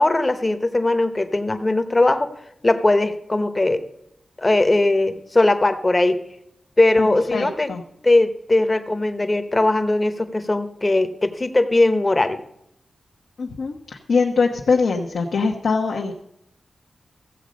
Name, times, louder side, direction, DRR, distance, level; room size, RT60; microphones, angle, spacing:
voice 1, 0.0-2.3 2.6-3.8 4.4-6.2 6.8-7.7 8.0-12.4, left 2 dB, 20° left, 9 dB, 0.8 m, -19 dB
voice 2, 7.0-7.8 13.4-16.1, left 4 dB, 80° left, 1 dB, 1.0 m, -22 dB
15.0 x 7.6 x 5.2 m, 0.78 s
wide cardioid pair, 170°, 0 cm